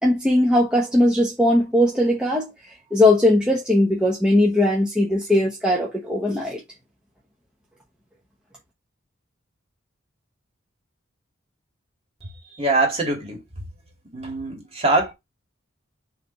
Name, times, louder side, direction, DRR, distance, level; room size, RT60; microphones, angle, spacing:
voice 1, 0.0-2.5 2.9-6.6, left 1 dB, 5° right, 0.9 m, -19 dB
voice 2, 12.2-13.4 14.1-15.1, right 2 dB, 30° right, 2.2 m, -23 dB
6.5 x 3.3 x 4.3 m
head